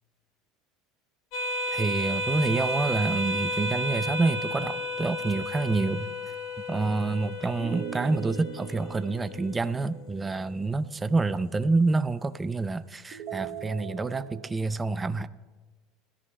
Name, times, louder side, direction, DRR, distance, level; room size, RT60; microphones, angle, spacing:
sound 1, 1.3-10.3, equal, 55° left, 2.0 m, -33 dB
voice 1, 1.7-6.1 6.7-15.3, right 3 dB, 15° right, 13 dB, 0.4 m, -27 dB
sound 2, 4.0-5.6 7.6-10.7 13.1-14.5, right 9 dB, 45° right, 0.9 m, -41 dB
20.5 x 13.5 x 2.2 m, 1.3 s
supercardioid pair, 140°, 0 cm